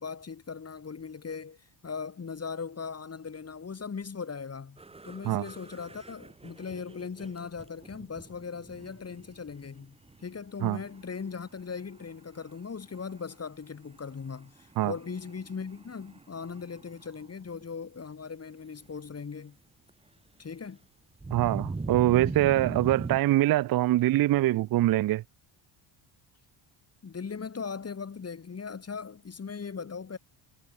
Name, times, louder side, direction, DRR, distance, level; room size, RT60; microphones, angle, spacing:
voice 1, 0.0-4.8 5.0-19.6 20.4-20.8 27.0-30.2, left 5 dB, 30° left, 7.7 m, -39 dB
sound 1, 4.8-9.8 10.1-10.4 10.8-11.6 12.0-12.1 12.4-12.6 12.9-13.3 14.0-17.3 17.5-17.6 21.2-23.2, right 3 dB, 10° right, 1.3 m, -41 dB
voice 2, 21.3-25.2, right 15 dB, 45° right, 0.5 m, -24 dB
cardioid pair, 130°, 50 cm